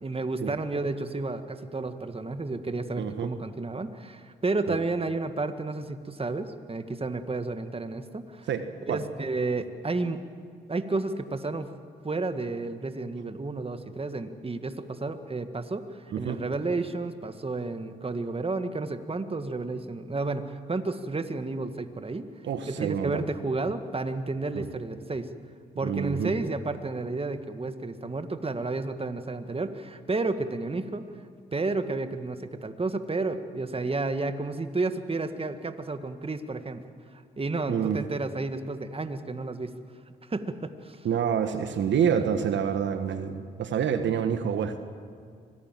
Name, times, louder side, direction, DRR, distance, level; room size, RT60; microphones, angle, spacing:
voice 1, 0.0-8.5 8.9-10.2 10.7-11.7 12.0-22.3 22.7-25.3 25.8-31.1 31.5-36.8 37.1-39.7 40.3-41.1, right 3 dB, 30° right, 9 dB, 1.9 m, -31 dB
voice 2, 3.0-3.3 4.7-4.8 8.5-9.0 16.1-16.4 22.4-23.2 24.5-24.6 25.8-26.3 37.7-38.0 41.0-44.8, right 8 dB, 65° right, 9 dB, 1.4 m, -27 dB
25.5 x 18.5 x 7.6 m, 2.2 s
hypercardioid pair, 45°, 20 cm